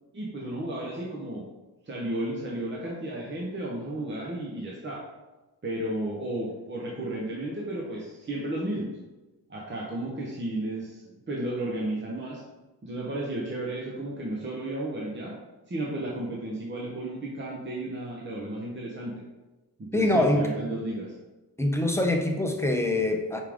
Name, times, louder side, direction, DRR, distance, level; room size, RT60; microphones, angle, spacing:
voice 1, 0.1-1.5 1.8-5.1 5.6-9.0 9.5-12.4 12.8-15.4 15.7-19.1 19.8-21.1, right 1 dB, 30° right, -3 dB, 0.9 m, -33 dB
voice 2, 19.9-20.5 21.6-23.4, left 1 dB, 5° left, 2 dB, 0.6 m, -24 dB
5.5 x 5.0 x 3.6 m, 1.1 s
wide cardioid pair, 140°, 39 cm